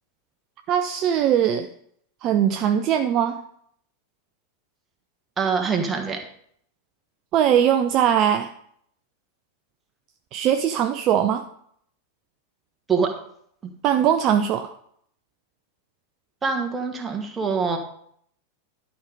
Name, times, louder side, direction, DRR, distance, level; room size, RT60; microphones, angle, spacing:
voice 1, 0.7-1.7 2.2-3.4 7.3-8.5 10.3-11.4 13.8-14.7, right 9 dB, 35° right, 8 dB, 0.6 m, -20 dB
voice 2, 5.4-6.2 12.9-13.1 13.6-13.7 16.4-17.8, right 5 dB, 15° right, 3 dB, 1.5 m, -24 dB
11.5 x 5.2 x 4.8 m, 0.66 s
figure-of-eight pair, 90°, 0 cm